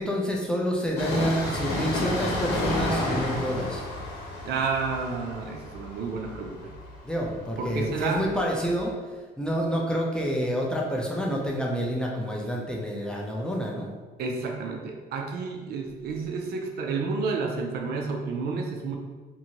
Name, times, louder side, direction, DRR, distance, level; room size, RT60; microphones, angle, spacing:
voice 1, 0.0-3.9 7.0-8.9 9.4-13.9, equal, 5° left, -2 dB, 0.5 m, -28 dB
Train, 1.0-8.4 8.7-8.8, left 1 dB, 70° left, 0.9 m, -31 dB
voice 2, 4.4-6.7 7.6-8.2 14.2-19.0, right 4 dB, 70° right, 2 dB, 0.5 m, -30 dB
2.7 x 2.5 x 2.8 m, 1.4 s
cardioid pair, 110°, 17 cm